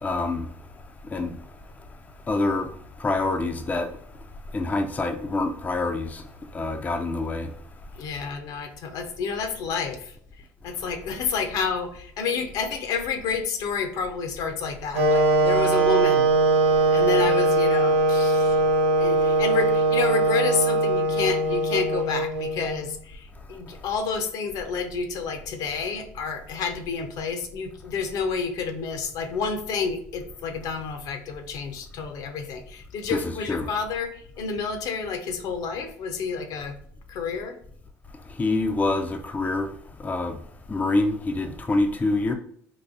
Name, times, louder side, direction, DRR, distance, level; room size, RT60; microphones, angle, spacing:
voice 1, 0.0-0.5 1.1-1.4 2.3-2.7 3.0-3.9 4.5-6.2 6.5-7.5 33.1-33.7 38.4-39.7 40.0-40.4 40.7-42.3, left 2 dB, 20° left, 0.5 m, -26 dB
voice 2, 8.0-10.1 10.6-16.3 16.9-18.6 19.0-36.7 37.1-37.6, left 5 dB, 65° left, 0.7 m, -29 dB
Wind instrument woodwind instrument, 14.9-22.9, right 2 dB, 85° right, 0.6 m, -21 dB
4.0 x 2.6 x 2.5 m
hypercardioid pair, 75°, 7 cm